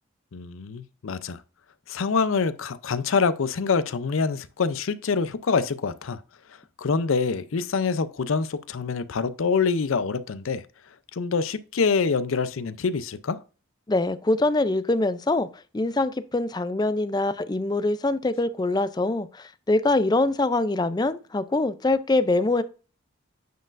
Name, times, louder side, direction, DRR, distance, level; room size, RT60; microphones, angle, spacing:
voice 1, 0.3-1.4 1.9-6.2 6.8-10.6 11.2-13.4, left 5 dB, 80° left, 0.5 m, -25 dB
voice 2, 13.9-15.5 15.7-22.6, left 2 dB, 20° left, 0.4 m, -24 dB
9.2 x 4.5 x 2.5 m
head